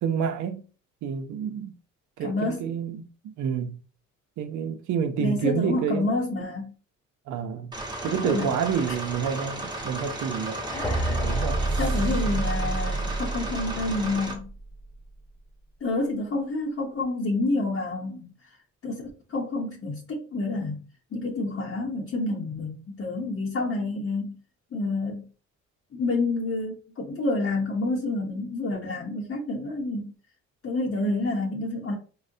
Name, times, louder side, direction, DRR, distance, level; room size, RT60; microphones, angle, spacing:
voice 1, 0.0-0.6 1.0-1.7 2.2-3.8 4.4-6.1 7.3-7.7 8.0-10.6 11.1-11.9 31.0-31.1, right 7 dB, 75° right, 0.6 m, -29 dB
voice 2, 2.2-2.7 5.2-6.7 8.1-8.5 10.7-11.2 11.8-14.5 15.8-18.3 18.8-20.8 21.1-24.4 24.7-25.2 25.9-30.1 30.6-32.0, left 2 dB, 45° left, 0.8 m, -28 dB
sound 1, 7.7-14.3, right 2 dB, 15° right, 1.0 m, -35 dB
sound 2, 10.5-14.5, right 2 dB, 5° left, 0.5 m, -28 dB
3.8 x 2.1 x 2.6 m
cardioid pair, 90°, 30 cm